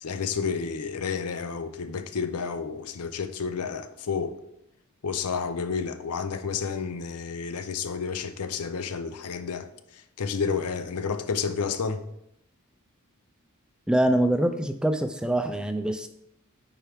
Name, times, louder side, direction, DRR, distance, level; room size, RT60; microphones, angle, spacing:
voice 1, 0.0-4.4 5.0-9.7 10.2-12.0, left 5 dB, 90° left, 0.6 m, -30 dB
voice 2, 13.9-16.1, right 1 dB, 5° right, 0.3 m, -24 dB
8.9 x 4.6 x 3.5 m
head